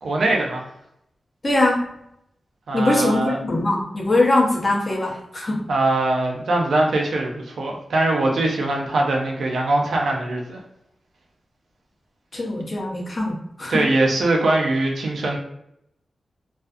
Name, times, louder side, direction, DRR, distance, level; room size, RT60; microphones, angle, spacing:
voice 1, 0.0-0.6 2.7-3.4 5.7-10.6 13.7-15.4, right 2 dB, 85° right, 1 dB, 0.5 m, -21 dB
voice 2, 1.4-1.9 2.7-5.6 12.3-13.9, left 2 dB, 40° left, -2 dB, 0.8 m, -22 dB
2.4 x 2.4 x 2.4 m, 0.77 s
wide cardioid pair, 100°, 0 cm